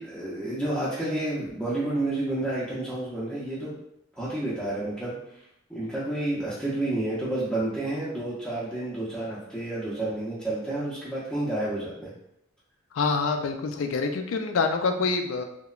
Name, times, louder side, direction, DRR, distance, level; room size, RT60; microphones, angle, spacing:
voice 1, 0.0-3.8 4.2-5.2 5.7-12.1, right 1 dB, 5° left, -10 dB, 0.5 m, -30 dB
voice 2, 12.9-15.4, left 4 dB, 75° left, 5 dB, 0.3 m, -26 dB
2.9 x 2.1 x 2.3 m, 0.78 s
head